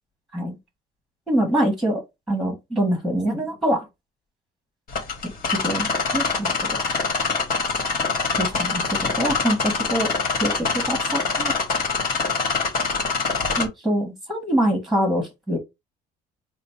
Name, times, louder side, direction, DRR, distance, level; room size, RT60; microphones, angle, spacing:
voice 1, 1.3-2.0 2.3-3.8 5.6-5.9 6.1-6.7 8.4-10.1 10.4-11.5 13.6-15.6, right 1 dB, ahead, 1.5 m, -24 dB
sound 1, 4.9-13.7, left 4 dB, 55° left, 1.4 m, -24 dB
3.9 x 2.1 x 4.4 m
cardioid pair, 110°, 17 cm